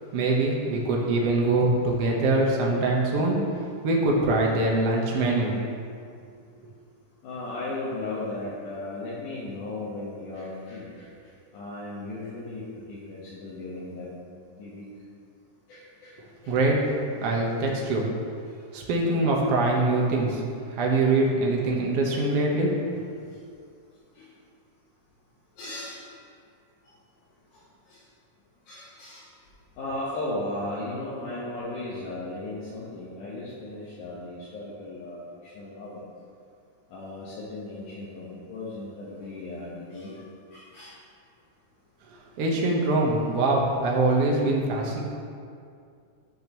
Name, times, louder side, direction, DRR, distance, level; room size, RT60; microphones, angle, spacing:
voice 1, 0.1-3.4 3.8-5.6 16.5-16.8 17.2-18.0 18.7-20.4 20.7-22.7 42.4-45.0, right 2 dB, 60° right, -2 dB, 1.9 m, -23 dB
voice 2, 7.2-11.1 11.5-12.6 12.9-14.1 14.5-14.9 15.7-16.1 16.4-16.5 24.2-24.3 25.6-26.0 27.9-28.0 28.7-29.2 29.8-36.0 36.9-40.2 40.5-40.9, left 2 dB, 75° left, -8 dB, 2.7 m, -36 dB
12.0 x 6.5 x 3.0 m, 2.3 s
omnidirectional pair, 3.6 m